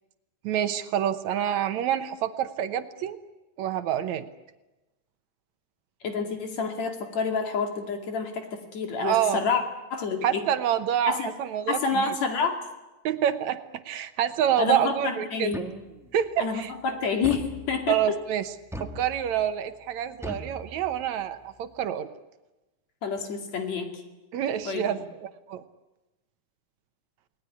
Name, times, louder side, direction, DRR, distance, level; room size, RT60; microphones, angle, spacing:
voice 1, 0.4-3.2 3.6-4.3 9.0-9.4 10.2-12.1 13.0-13.6 13.9-15.5 16.1-16.7 17.9-18.4 18.8-22.1 24.3-25.6, right 10 dB, 70° right, 10 dB, 2.2 m, -27 dB
voice 2, 6.0-9.6 9.9-10.4 11.1-11.3 11.7-12.6 14.6-15.7 16.4-18.2 23.0-24.0 24.7-24.9, left 5 dB, 60° left, 4 dB, 3.7 m, -28 dB
sound 1, 15.5-16.2 17.2-18.1 18.7-19.5 20.2-21.2, equal, ahead, 0.9 m, -39 dB
29.5 x 19.0 x 9.8 m, 1.1 s
omnidirectional pair, 3.5 m